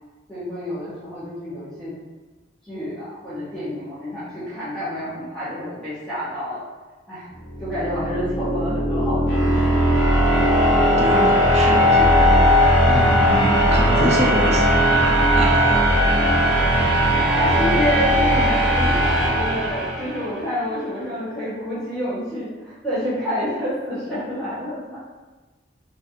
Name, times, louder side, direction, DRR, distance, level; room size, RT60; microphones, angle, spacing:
voice 1, 0.3-1.9 2.6-6.6 7.1-7.2 7.6-9.8 10.3-10.5 14.8-15.3 17.1-25.0, equal, 5° left, -13 dB, 0.8 m, -28 dB
sound 1, 7.5-20.4, equal, 70° left, 0.8 m, -18 dB
voice 2, 11.0-12.4 12.9-15.9, right 1 dB, 40° right, -2 dB, 0.5 m, -26 dB
2.8 x 2.4 x 2.5 m, 1.2 s
head